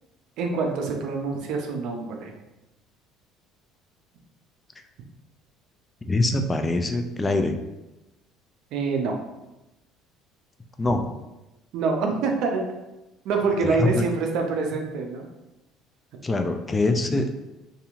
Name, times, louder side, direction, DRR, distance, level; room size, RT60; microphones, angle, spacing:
voice 1, 0.4-2.3 8.7-9.2 10.9-11.0 11.7-12.6 13.2-15.3, right 4 dB, 65° right, 3 dB, 0.5 m, -26 dB
voice 2, 6.0-7.6 10.8-11.0 13.7-14.0 16.2-17.5, left 2 dB, 25° left, 6 dB, 0.3 m, -24 dB
2.8 x 2.6 x 2.4 m, 0.99 s
hypercardioid pair, 70°, 0 cm